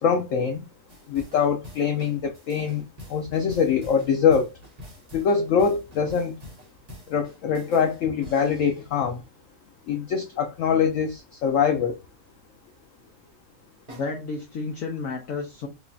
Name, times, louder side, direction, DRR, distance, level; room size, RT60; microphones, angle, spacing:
voice 1, 0.0-0.7 1.1-2.8 3.1-4.5 5.1-6.4 7.1-9.2 9.9-11.9, left 6 dB, 85° left, 0.7 m, -23 dB
sound 1, 0.9-9.1 13.9-14.0, left 1 dB, 30° right, 0.9 m, -46 dB
voice 2, 13.9-15.7, left 4 dB, 60° left, 1.0 m, -31 dB
4.9 x 2.3 x 2.6 m
omnidirectional pair, 1.9 m